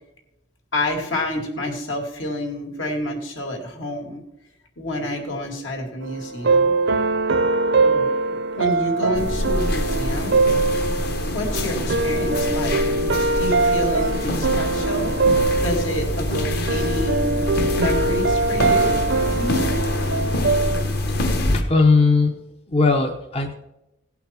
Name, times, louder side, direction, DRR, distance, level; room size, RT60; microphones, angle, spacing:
voice 1, 0.7-4.2 4.8-6.7 7.8-8.1 8.6-10.4 11.2-12.8 13.3-15.2 15.6-17.3 17.8-19.7, equal, 75° left, 1 dB, 2.4 m, -28 dB
sound 1, 6.0-20.8, right 3 dB, 65° right, 0.7 m, -22 dB
sound 2, 9.1-21.6, left 1 dB, 50° left, 1.2 m, -25 dB
voice 2, 21.5-22.4 22.7-23.5, left 3 dB, 30° left, 3 dB, 0.6 m, -18 dB
17.0 x 5.7 x 4.4 m, 0.91 s
head